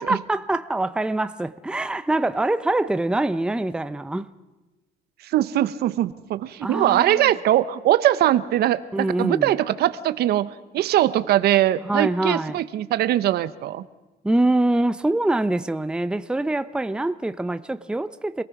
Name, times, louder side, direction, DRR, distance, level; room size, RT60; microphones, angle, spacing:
voice 1, 0.0-4.3 6.6-7.3 8.9-9.5 11.8-12.6 14.2-18.4, right 2 dB, 5° right, 0.7 m, -24 dB
voice 2, 5.2-13.8, right 13 dB, 70° right, 1.0 m, -21 dB
27.0 x 18.5 x 6.0 m
cardioid pair, 110°, 17 cm